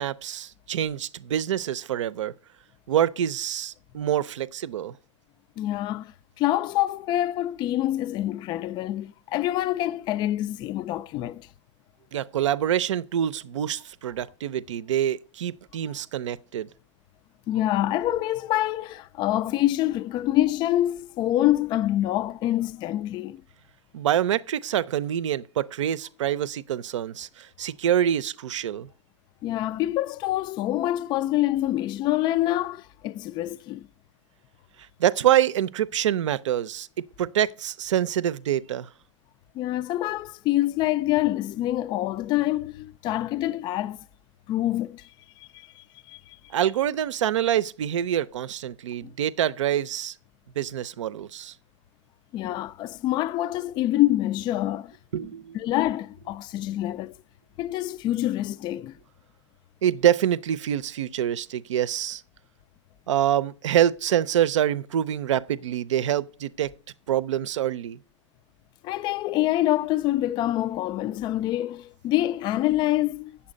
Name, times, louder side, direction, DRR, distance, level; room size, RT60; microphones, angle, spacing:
voice 1, 0.0-2.3 2.9-5.0 12.1-16.7 23.9-28.9 34.8-36.9 37.2-38.9 46.5-50.2 50.6-51.5 55.1-55.6 59.8-62.2 63.1-66.7 67.1-68.0, right 10 dB, 70° right, 0.6 m, -26 dB
voice 2, 5.6-11.5 17.5-23.4 29.4-33.9 39.5-44.0 44.5-45.1 45.4-46.4 49.0-49.1 52.3-54.9 55.5-57.1 57.6-58.9 68.8-73.3, left 14 dB, 30° left, 0.4 m, -26 dB
8.8 x 7.2 x 5.1 m
hypercardioid pair, 115°, 16 cm